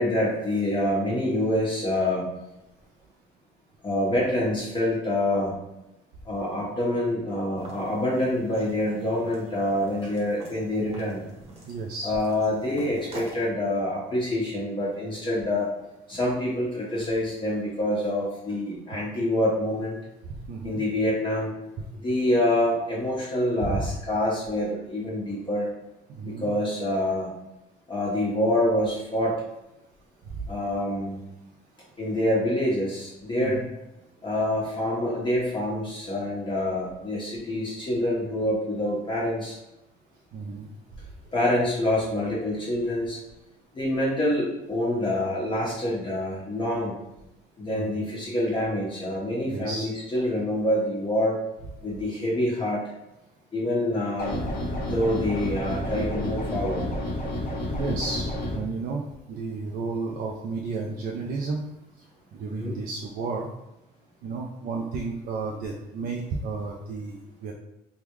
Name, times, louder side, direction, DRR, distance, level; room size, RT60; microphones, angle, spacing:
voice 1, 0.0-2.3 3.8-5.5 6.2-11.2 12.0-15.7 16.1-20.0 20.6-21.5 22.0-25.7 26.2-27.3 27.9-29.4 30.5-31.2 32.0-33.6 34.2-39.6 41.3-43.2 43.7-47.0 47.6-51.4 51.8-52.8 53.5-54.4 54.9-56.9 62.6-62.7, left 1 dB, 30° left, -6 dB, 1.2 m, -26 dB
sound 1, 7.6-13.5, right 2 dB, 35° right, 1.0 m, -45 dB
voice 2, 10.8-11.1 11.7-12.2 20.2-20.8 21.8-21.9 23.7-23.9 26.1-26.5 30.2-30.5 33.4-33.7 40.3-40.7 47.7-48.0 49.5-50.3 57.7-61.6 62.3-63.5 64.2-67.5, right 4 dB, 65° right, 0 dB, 0.5 m, -33 dB
sound 2, 54.2-58.6, left 1 dB, 60° left, 0.9 m, -30 dB
3.5 x 2.3 x 3.1 m, 0.93 s
cardioid pair, 110°, 17 cm